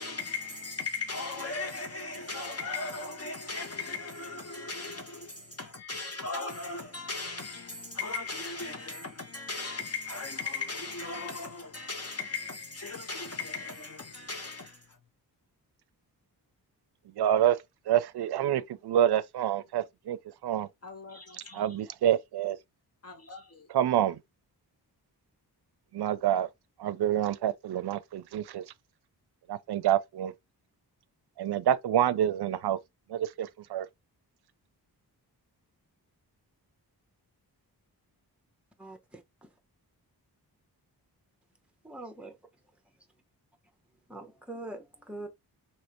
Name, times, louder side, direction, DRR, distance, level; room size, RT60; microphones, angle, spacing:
voice 1, 0.0-15.0 20.8-21.7 23.0-23.7, left 3 dB, 40° left, 0.9 m, -37 dB
voice 2, 17.2-17.6 17.9-20.2 20.4-20.7 21.5-22.6 23.7-24.2 25.9-26.5 26.8-28.6 29.5-30.3 31.4-32.8 33.1-33.9, right 11 dB, 75° right, 0.5 m, -27 dB
voice 3, 38.8-39.2 41.8-42.3 44.1-45.3, right 2 dB, 5° right, 0.7 m, -42 dB
3.2 x 2.9 x 2.9 m
wide cardioid pair, 165°, 39 cm